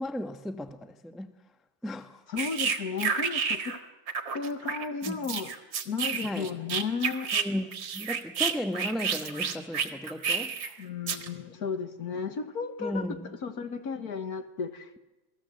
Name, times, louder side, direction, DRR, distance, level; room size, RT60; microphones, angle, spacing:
voice 1, 0.0-1.3 1.8-2.2 5.0-5.2 6.2-6.5 7.3-10.5 12.8-13.3, left 1 dB, ahead, 0.8 m, -35 dB
voice 2, 2.3-3.8 4.3-5.5 5.9-7.3 10.8-13.0 13.4-15.0, left 5 dB, 55° left, 1.8 m, -34 dB
sound 1, 2.4-3.8 4.1-7.4 7.7-10.7 11.1-11.3, right 6 dB, 75° right, 2.4 m, -30 dB
27.5 x 18.5 x 7.7 m
omnidirectional pair, 2.1 m